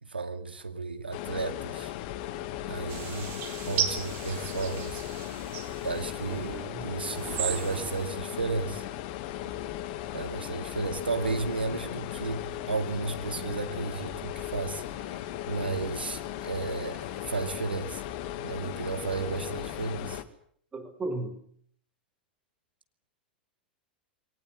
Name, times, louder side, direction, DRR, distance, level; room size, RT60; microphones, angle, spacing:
voice 1, 0.0-1.9 2.6-3.3 3.6-5.0 5.8-8.9 9.4-9.5 10.1-18.0 18.4-20.2, right 4 dB, 85° right, 8 dB, 2.5 m, -33 dB
sound 1, 1.1-20.2, left 12 dB, 50° left, 2.1 m, -37 dB
sound 2, 2.9-6.4 7.0-8.1, right 10 dB, 45° right, 4.2 m, -36 dB
voice 2, 6.2-6.9 20.7-21.4, right 2 dB, 20° right, 9 dB, 4.9 m, -36 dB
22.5 x 19.5 x 9.0 m, 0.62 s
figure-of-eight pair, 95°, 5 cm